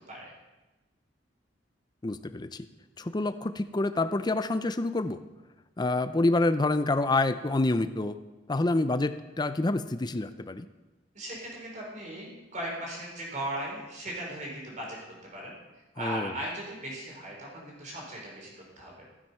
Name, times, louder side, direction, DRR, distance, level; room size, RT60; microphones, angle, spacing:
voice 1, 2.0-2.6 3.0-5.2 5.8-8.2 8.5-10.7 16.0-16.3, left 2 dB, 25° left, 10 dB, 0.5 m, -27 dB
voice 2, 11.1-19.1, right 1 dB, 40° right, -2 dB, 4.4 m, -38 dB
15.0 x 7.6 x 5.6 m, 1.1 s
head